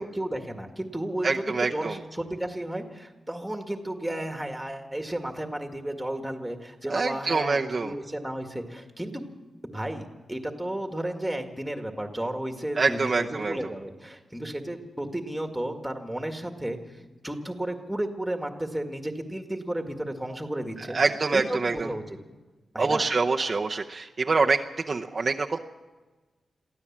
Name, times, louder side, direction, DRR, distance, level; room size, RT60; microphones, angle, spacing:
voice 1, 0.0-9.2 9.7-21.0 21.3-22.2 22.7-23.1, right 1 dB, 5° right, 5 dB, 1.9 m, -33 dB
voice 2, 1.2-2.0 6.9-7.9 12.8-13.6 20.9-21.9 22.8-24.6 24.9-25.6, right 4 dB, 35° right, 1 dB, 0.8 m, -25 dB
23.0 x 15.5 x 7.4 m, 1.2 s
wide cardioid pair, 155°, 0 cm